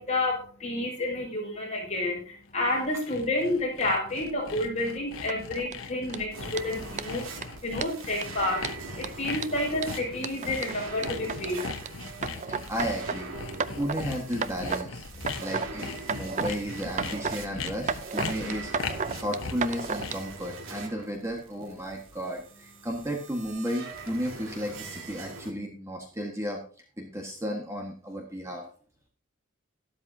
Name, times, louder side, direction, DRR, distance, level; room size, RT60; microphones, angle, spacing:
voice 1, 0.0-12.1 15.1-15.3 19.1-19.2, left 1 dB, 35° left, -2 dB, 5.2 m, -30 dB
Sawing, 2.5-20.3, left 4 dB, 85° left, 1.0 m, -39 dB
sound 1, 5.3-5.7 6.1-6.2 6.6-6.7 7.0-7.1 7.4-7.5 7.8-8.2 8.6-11.9 12.2-13.2 13.5-14.0 14.3-14.9 15.1-15.7 16.0-16.5 16.8-17.4 17.7-20.1, right 5 dB, 35° right, 0.5 m, -32 dB
sound 2, 6.3-25.5, right 3 dB, 90° right, 1.8 m, -43 dB
voice 2, 12.3-13.3 13.8-15.0 15.4-18.7 19.2-26.6 27.0-28.7, equal, 15° right, 1 dB, 1.6 m, -33 dB
12.5 x 12.5 x 2.8 m, 0.41 s
head